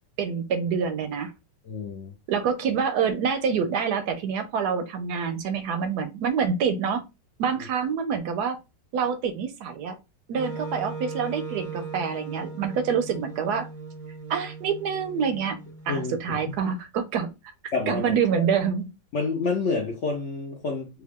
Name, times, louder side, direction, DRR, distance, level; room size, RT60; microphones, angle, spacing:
voice 1, 0.2-1.3 2.3-7.0 7.4-8.6 8.9-10.0 10.3-13.7 14.3-15.6 15.9-17.3 17.9-18.9, right 6 dB, 75° right, 1.0 m, -26 dB
voice 2, 1.6-2.1 15.9-16.4 17.7-18.0 18.4-18.5 19.1-20.9, left 4 dB, 60° left, 0.8 m, -28 dB
Wind instrument woodwind instrument, 10.4-16.4, right 4 dB, 15° right, 0.5 m, -38 dB
3.5 x 2.3 x 3.5 m
omnidirectional pair, 1.9 m